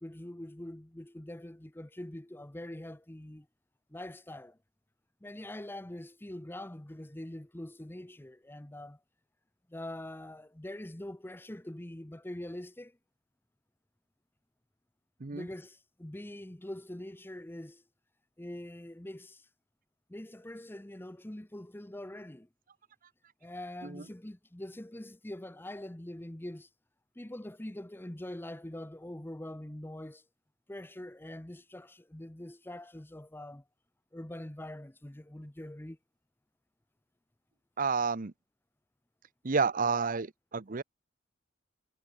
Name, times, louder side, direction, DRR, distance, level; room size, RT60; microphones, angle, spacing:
voice 1, 0.0-3.5 3.9-4.6 5.2-9.0 9.7-13.0 15.3-17.8 18.4-19.5 20.1-22.5 23.4-26.7 27.2-30.2 30.7-33.6 34.1-36.0, left 1 dB, 10° left, 0.8 m, -44 dB
voice 2, 37.8-38.3 39.4-40.8, right 5 dB, 45° right, 0.7 m, -30 dB
head